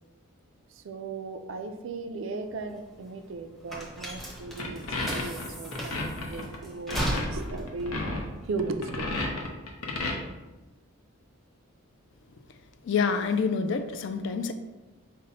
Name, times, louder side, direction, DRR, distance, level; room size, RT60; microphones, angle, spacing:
voice 1, 0.7-8.0 8.4-9.1, right 3 dB, 60° right, 7 dB, 0.4 m, -37 dB
sound 1, 2.4-9.2, right 1 dB, ahead, 0.6 m, -36 dB
sound 2, 4.6-10.1, left 2 dB, 85° left, 0.7 m, -32 dB
voice 2, 12.8-14.5, left 5 dB, 55° left, 8 dB, 0.3 m, -27 dB
5.2 x 2.1 x 4.0 m, 1.1 s
head